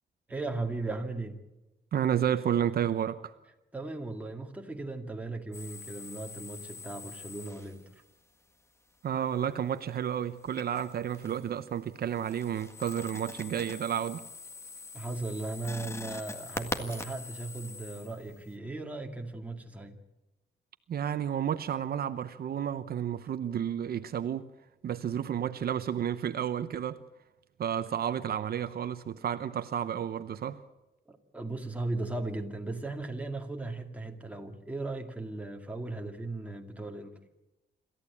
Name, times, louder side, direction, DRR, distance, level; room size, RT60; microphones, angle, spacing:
voice 1, 0.3-1.4 3.7-7.9 14.9-20.0 31.1-37.2, right 2 dB, 10° right, 2.2 m, -37 dB
voice 2, 1.9-3.3 9.0-14.2 20.9-24.5 24.8-27.0 27.6-30.6, right 9 dB, 60° right, 0.8 m, -31 dB
sound 1, 5.5-8.0 10.4-11.5 11.9-18.5, left 2 dB, 15° left, 1.7 m, -43 dB
26.5 x 14.0 x 8.5 m
wide cardioid pair, 135°, 18 cm